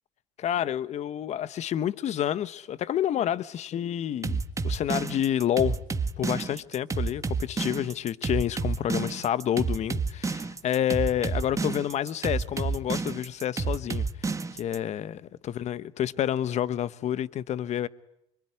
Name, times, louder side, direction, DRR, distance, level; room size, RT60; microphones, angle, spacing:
voice 1, 0.4-5.8 6.2-17.9, left 10 dB, 50° left, 1.1 m, -29 dB
sound 1, 4.2-14.8, right 4 dB, 20° right, 1.8 m, -29 dB
25.5 x 23.5 x 9.8 m
supercardioid pair, 90°, 15 cm